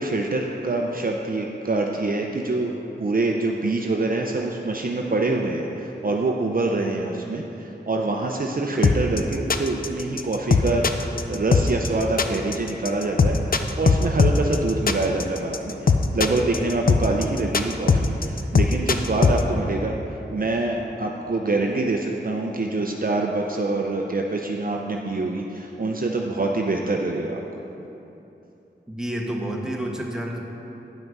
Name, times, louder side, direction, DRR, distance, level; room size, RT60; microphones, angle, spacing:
voice 1, 0.0-20.0 20.3-27.4, right 2 dB, 50° right, 1 dB, 0.6 m, -25 dB
sound 1, 8.8-19.4, left 4 dB, 50° left, 0.5 m, -19 dB
voice 2, 28.9-30.4, right 1 dB, 5° right, -1 dB, 1.4 m, -29 dB
9.2 x 5.8 x 5.4 m, 3.0 s
cardioid pair, 50°, 19 cm